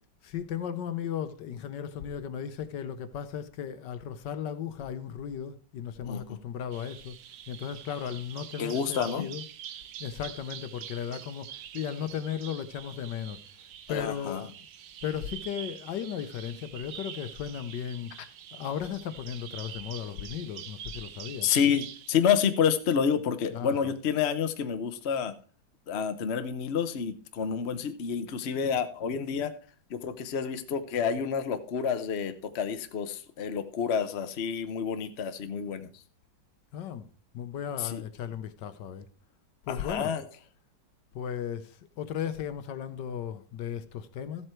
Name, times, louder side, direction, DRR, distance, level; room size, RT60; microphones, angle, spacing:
voice 1, 0.2-7.1 7.5-9.5 10.0-13.4 13.9-14.5 15.0-18.1 18.5-21.5 23.5-24.0 36.7-37.1 37.3-39.1 39.6-40.2 41.1-44.5, left 9 dB, 70° left, 1.4 m, -36 dB
Bird vocalization bird call bird song, 6.7-22.1, right 10 dB, 65° right, 1.1 m, -45 dB
voice 2, 8.6-9.2 13.9-14.4 21.4-25.3 25.9-29.5 29.9-35.9 37.8-38.0 39.7-40.2, left 7 dB, 50° left, 0.8 m, -29 dB
14.0 x 7.8 x 4.4 m
omnidirectional pair, 2.1 m